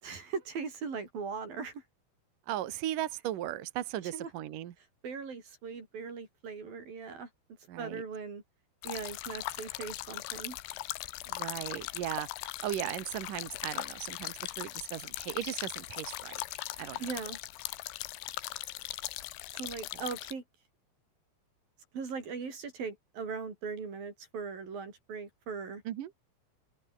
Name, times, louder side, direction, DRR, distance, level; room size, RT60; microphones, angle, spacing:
voice 1, 0.0-1.8 4.1-4.3 5.0-7.3 7.8-8.4 8.8-10.6 17.0-17.4 19.5-20.4 21.9-25.8, right 5 dB, 45° right, 6.8 m, -39 dB
voice 2, 2.5-4.7 7.7-8.0 11.3-16.4 16.8-17.0 25.9-26.1, right 12 dB, 65° right, 2.2 m, -37 dB
sound 1, 8.8-20.3, left 17 dB, 75° left, 3.2 m, -39 dB
open air
omnidirectional pair, 5.8 m